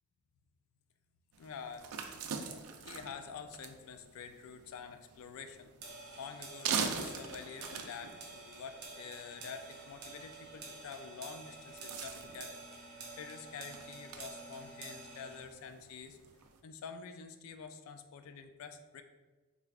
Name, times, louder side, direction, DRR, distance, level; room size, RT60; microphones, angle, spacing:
sound 1, 1.3-16.6, right 6 dB, 75° right, 0.4 m, -44 dB
voice 1, 1.4-1.9 2.8-5.7 6.2-12.6 13.1-16.2 16.6-19.0, left 6 dB, 70° left, 8 dB, 0.3 m, -47 dB
sound 2, 5.8-15.4, right 3 dB, 50° right, 0.7 m, -49 dB
3.7 x 3.2 x 2.4 m, 1.3 s
head